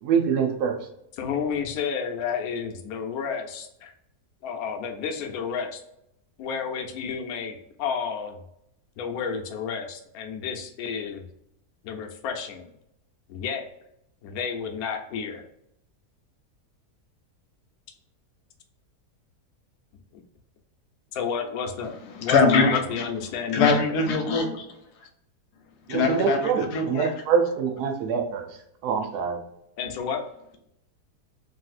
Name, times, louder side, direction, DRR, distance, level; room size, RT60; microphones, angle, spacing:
voice 1, 0.0-0.8 25.9-28.5 28.8-29.4, right 6 dB, 80° right, 3 dB, 1.2 m, -25 dB
voice 2, 1.2-3.9 4.4-5.8 6.4-8.4 9.0-11.3 11.8-12.7 13.3-13.6 14.2-15.4 20.1-20.2 21.1-21.9 22.2-22.4 22.7-24.0 29.8-30.2, left 6 dB, 70° left, 3 dB, 1.0 m, -31 dB
voice 3, 22.1-23.1 23.5-24.6 25.9-27.1, left 4 dB, 90° left, 5 dB, 1.2 m, -22 dB
3.2 x 2.7 x 2.4 m, 0.78 s
omnidirectional pair, 1.7 m